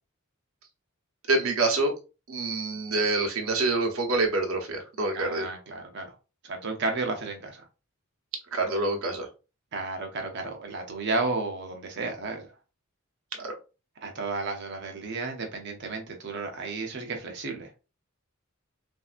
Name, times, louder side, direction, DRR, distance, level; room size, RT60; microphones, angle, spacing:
voice 1, 1.3-1.9 2.3-5.5 8.5-9.3 13.4-13.6, right 2 dB, 75° right, 0.9 m, -26 dB
voice 2, 5.1-6.2 6.4-7.6 9.7-12.5 14.0-17.7, right 3 dB, 55° right, 0.7 m, -32 dB
3.3 x 2.6 x 2.4 m
head